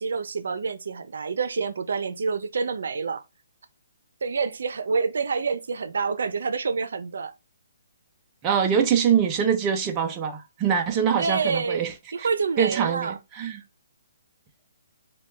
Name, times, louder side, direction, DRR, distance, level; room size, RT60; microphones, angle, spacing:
voice 1, 0.0-3.2 4.2-7.3 11.2-11.9 12.1-13.2, right 5 dB, 65° right, 0.6 m, -27 dB
voice 2, 8.4-11.9 12.2-12.3 12.6-13.6, right 8 dB, 15° right, 0.5 m, -24 dB
6.4 x 2.3 x 3.3 m
hypercardioid pair, 175°, 0 cm